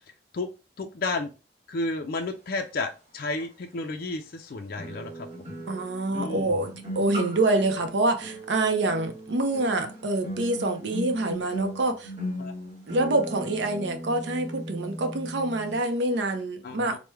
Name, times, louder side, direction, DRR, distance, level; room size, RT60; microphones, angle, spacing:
voice 1, 0.8-1.3 1.7-5.5 6.1-6.6 12.4-12.5 16.6-17.0, left 2 dB, 50° left, 0.4 m, -32 dB
sound 1, 3.4-3.5 4.8-15.9 16.1-16.4, equal, 35° right, 1.3 m, -38 dB
voice 2, 5.7-12.1 12.9-17.0, right 2 dB, 75° right, 0.6 m, -26 dB
3.1 x 2.1 x 3.3 m
head